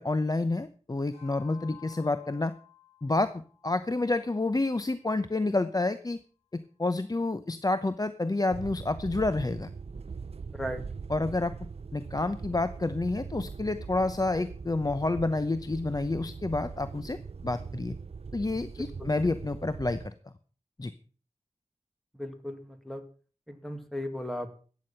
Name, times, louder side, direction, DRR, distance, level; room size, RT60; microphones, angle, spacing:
voice 1, 0.0-2.5 3.0-3.3 3.6-6.2 6.8-9.7 11.1-11.5 11.9-17.9 18.3-20.1 20.8-20.9, left 2 dB, 30° left, 12 dB, 0.8 m, -29 dB
sound 1, 1.1-5.7, left 11 dB, 65° left, 4.8 m, -55 dB
sound 2, 8.5-20.1, right 5 dB, 55° right, 0.6 m, -41 dB
voice 2, 18.8-19.1 22.2-23.0 23.5-24.5, equal, ahead, 7 dB, 2.2 m, -36 dB
14.5 x 9.6 x 5.7 m, 0.40 s
wide cardioid pair, 70°, 12 cm